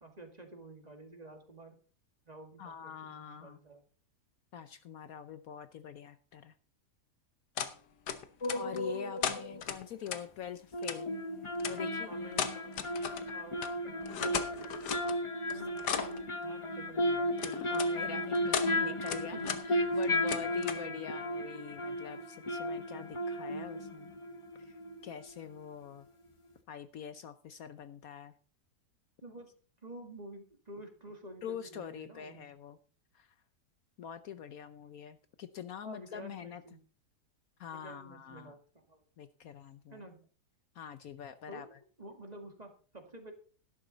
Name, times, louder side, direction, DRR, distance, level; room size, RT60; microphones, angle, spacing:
voice 1, 0.0-1.8 2.3-3.8 8.7-8.8 9.5-9.6 12.1-12.9 13.3-14.5 15.5-17.9 18.4-18.5 19.3-19.5 29.2-29.5 29.8-32.4 35.8-36.8 37.7-39.0 39.9-40.2 41.5-43.3, right 1 dB, 25° right, 5 dB, 1.9 m, -50 dB
voice 2, 2.6-3.6 4.5-6.5 8.5-11.1 11.7-12.1 15.5-15.6 17.6-19.4 19.7-24.1 24.6-26.1 26.7-28.3 31.4-32.8 33.1-33.3 34.0-36.6 37.6-38.5 39.2-40.0 40.7-41.7, left 8 dB, 65° left, 12 dB, 1.1 m, -44 dB
sound 1, 7.6-7.7 8.1-8.8 9.2-10.2 10.8-11.0 11.6-11.8 12.3-13.3 13.6-13.7 14.0-15.2 15.5-16.2 17.4-17.9 18.3-18.7 19.1-19.6 19.9-20.9, left 8 dB, 85° left, 1.7 m, -36 dB
sound 2, 8.4-9.6 10.7-25.2 25.5-25.6, left 1 dB, 30° left, 0.6 m, -35 dB
12.5 x 11.5 x 4.0 m, 0.39 s
omnidirectional pair, 1.8 m